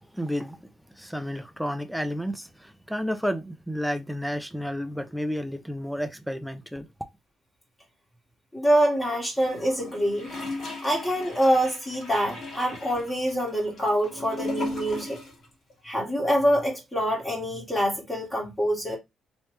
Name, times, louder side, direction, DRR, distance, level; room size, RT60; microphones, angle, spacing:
voice 1, 0.1-0.6 0.9-6.9, equal, ahead, 0.5 m, -31 dB
voice 2, 8.5-10.3 10.8-15.2 15.8-19.0, equal, 20° left, 1.7 m, -25 dB
Gurgling / Toilet flush, 9.4-15.4 15.7-15.8, left 2 dB, 60° left, 1.9 m, -37 dB
3.1 x 3.1 x 3.1 m
cardioid pair, 90°, 0 cm